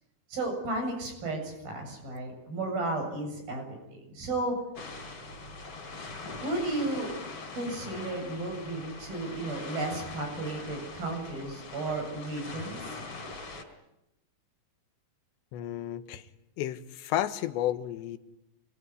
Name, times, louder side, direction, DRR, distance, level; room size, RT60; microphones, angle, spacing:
voice 1, 0.3-4.6 6.4-7.1 7.5-13.0, right 2 dB, 55° right, 3 dB, 9.5 m, -33 dB
sound 1, 4.8-13.6, left 3 dB, 35° left, 4.5 m, -42 dB
voice 2, 15.5-16.2 16.6-18.2, left 12 dB, 90° left, 11 dB, 3.4 m, -32 dB
27.5 x 21.5 x 9.8 m, 0.88 s
omnidirectional pair, 5.0 m